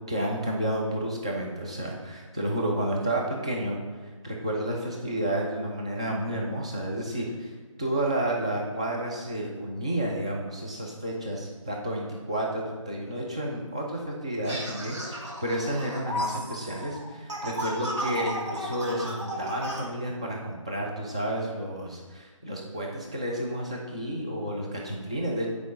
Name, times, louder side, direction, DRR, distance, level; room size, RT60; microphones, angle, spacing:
voice 1, 0.1-3.8 4.2-7.5 7.8-25.5, right 1 dB, 10° right, -1 dB, 0.4 m, -31 dB
sound 1, 14.4-19.8, equal, 60° right, 1.7 m, -34 dB
8.1 x 4.7 x 5.0 m, 1.4 s
figure-of-eight pair, 165°, 17 cm